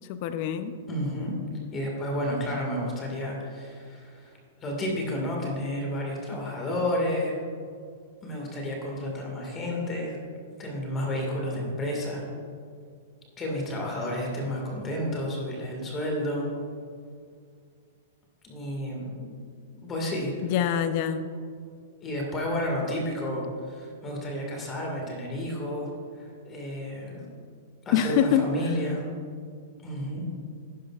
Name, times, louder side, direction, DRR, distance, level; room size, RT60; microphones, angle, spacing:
voice 1, 0.1-0.7 20.4-21.3 27.9-28.5, left 9 dB, 45° left, 11 dB, 0.6 m, -24 dB
voice 2, 0.9-1.4 1.7-4.3 4.6-7.4 8.2-10.2 10.6-12.2 13.4-16.5 18.4-19.3 19.8-20.3 22.0-25.9 26.2-27.3 27.9-29.0 29.8-30.3, left 1 dB, 20° left, -1 dB, 1.9 m, -31 dB
11.5 x 10.5 x 2.4 m, 2.2 s
hypercardioid pair, 150°, 0 cm